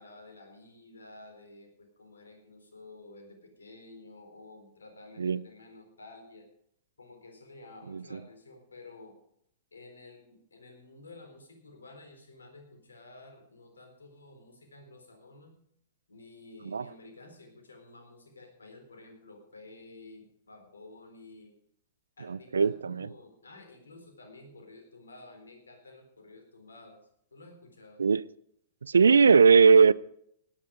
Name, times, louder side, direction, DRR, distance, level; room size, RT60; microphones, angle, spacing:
voice 1, 0.0-6.5 7.0-9.2 9.7-15.6 16.1-21.5 22.2-27.0 27.3-28.0, left 2 dB, 85° left, 4.1 m, -51 dB
voice 2, 22.3-23.1 28.0-28.2 28.8-29.9, right 5 dB, 80° right, 0.5 m, -20 dB
17.5 x 10.5 x 5.1 m
hypercardioid pair, 105°, 0 cm